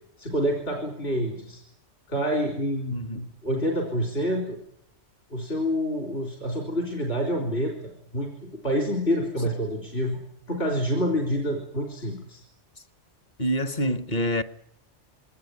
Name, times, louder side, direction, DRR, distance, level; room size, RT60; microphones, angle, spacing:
voice 1, 0.2-1.6 2.1-4.6 5.3-8.3 8.6-10.2 10.5-12.4, equal, 60° left, 4.1 m, -27 dB
voice 2, 2.9-3.2 13.4-14.4, equal, 40° left, 1.2 m, -26 dB
23.0 x 19.0 x 9.5 m
omnidirectional pair, 1.2 m